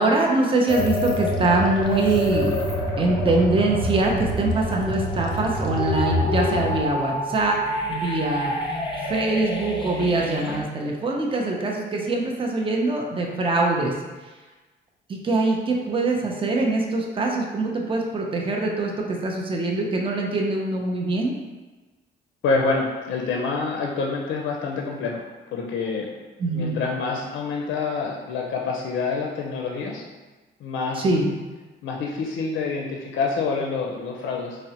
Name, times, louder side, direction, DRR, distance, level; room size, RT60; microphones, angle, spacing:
voice 1, 0.0-2.5 3.0-8.5 9.0-13.9 15.1-21.3 26.4-26.8 30.9-31.2, right 2 dB, 25° right, 0 dB, 0.5 m, -23 dB
sound 1, 0.7-10.6, left 1 dB, 25° left, 0.6 m, -27 dB
voice 2, 22.4-25.2 25.5-26.1 26.5-30.0 30.6-31.0 31.8-34.6, left 4 dB, 70° left, -1 dB, 0.4 m, -27 dB
3.7 x 2.0 x 2.8 m, 1.2 s
cardioid pair, 90°, 20 cm